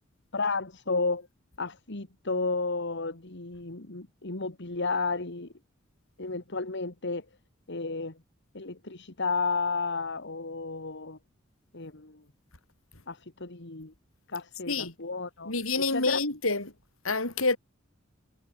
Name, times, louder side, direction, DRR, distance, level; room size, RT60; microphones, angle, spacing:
voice 1, 0.3-1.3 1.6-5.5 6.2-7.3 7.7-8.2 8.5-11.2 11.7-12.2 13.1-13.9 14.3-16.2, left 3 dB, 60° left, 2.1 m, -32 dB
voice 2, 15.5-16.7 17.0-17.6, left 3 dB, 80° left, 5.4 m, -27 dB
head